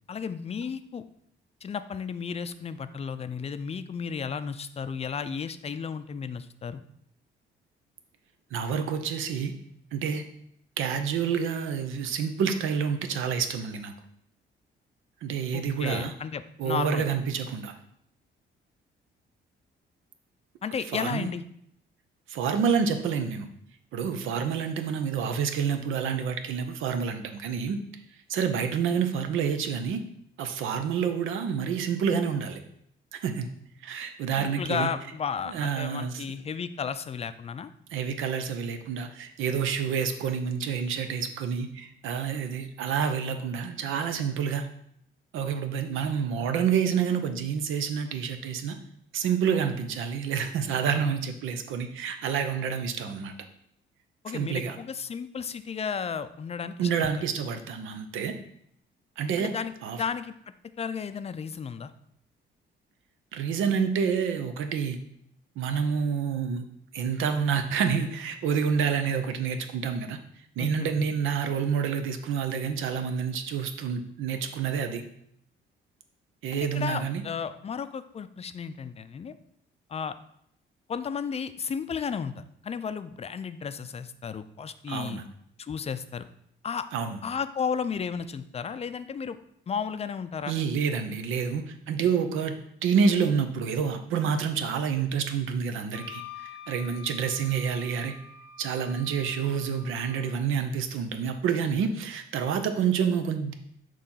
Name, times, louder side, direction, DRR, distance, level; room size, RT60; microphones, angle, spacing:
voice 1, 0.1-1.0 1.6-6.8 15.5-17.1 20.6-21.4 34.4-37.7 54.2-57.1 59.4-59.7 60.0-60.3 60.8-61.9 70.6-70.9 76.5-79.4 79.9-80.2 80.9-85.2 85.6-86.2 86.6-86.9 87.2-89.4 89.7-90.5, left 6 dB, 30° left, 12 dB, 0.4 m, -33 dB
voice 2, 8.5-9.5 9.9-10.2 10.8-13.9 15.2-16.1 16.6-17.7 20.9-21.3 22.3-23.5 23.9-27.8 28.3-30.0 30.4-32.6 33.1-33.5 33.8-34.9 35.5-36.2 37.9-44.7 45.3-48.8 49.1-53.3 54.3-54.8 56.8-58.4 59.2-59.5 59.8-60.0 63.3-65.0 65.6-66.7 66.9-70.2 70.6-75.0 76.4-77.2 84.9-85.3 86.9-87.2 90.5-98.2 98.6-103.5, right 6 dB, 85° right, 8 dB, 0.7 m, -28 dB
Wind instrument woodwind instrument, 95.9-100.4, left 7 dB, 80° left, 0.6 m, -47 dB
6.6 x 3.0 x 5.5 m, 0.71 s
cardioid pair, 90°, 20 cm